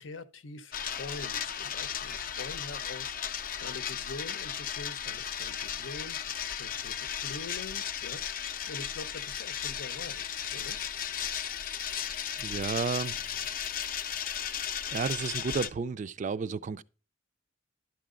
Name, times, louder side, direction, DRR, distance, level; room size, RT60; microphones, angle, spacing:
voice 1, 0.0-10.8, left 3 dB, 80° left, 0.8 m, -44 dB
sound 1, 0.7-15.7, left 9 dB, 45° left, 0.5 m, -35 dB
voice 2, 12.4-13.1 14.9-16.8, right 5 dB, 40° right, 0.3 m, -32 dB
11.5 x 5.8 x 3.7 m
head